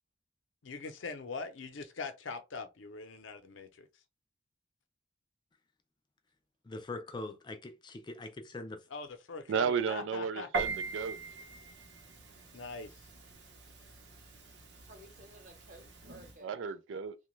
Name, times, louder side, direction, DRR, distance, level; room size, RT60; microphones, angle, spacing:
voice 1, 0.6-3.9 8.9-10.5 12.5-12.9, left 4 dB, 85° left, 0.6 m, -42 dB
voice 2, 6.7-8.8, left 2 dB, 25° left, 0.3 m, -42 dB
voice 3, 9.5-11.2 16.4-17.2, right 6 dB, 85° right, 0.4 m, -33 dB
Piano, 10.5-16.4, right 4 dB, 65° right, 0.8 m, -42 dB
voice 4, 14.5-16.6, right 1 dB, 40° right, 1.0 m, -55 dB
3.0 x 2.2 x 3.1 m
head